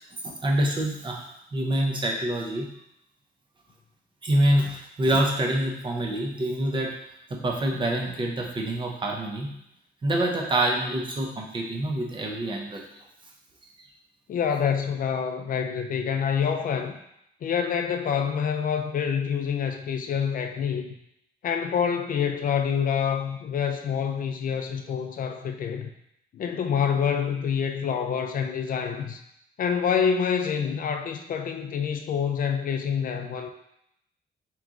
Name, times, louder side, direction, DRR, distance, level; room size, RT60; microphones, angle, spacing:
voice 1, 0.2-2.7 4.2-6.9 7.3-9.5 10.0-12.8 13.8-13.9, right 1 dB, 25° right, 0 dB, 0.6 m, -26 dB
voice 2, 14.3-17.0 17.4-20.9 21.4-25.9 26.3-29.2 29.6-33.5, left 7 dB, 50° left, 6 dB, 0.4 m, -27 dB
3.7 x 3.0 x 3.6 m, 0.78 s
wide cardioid pair, 170°, 19 cm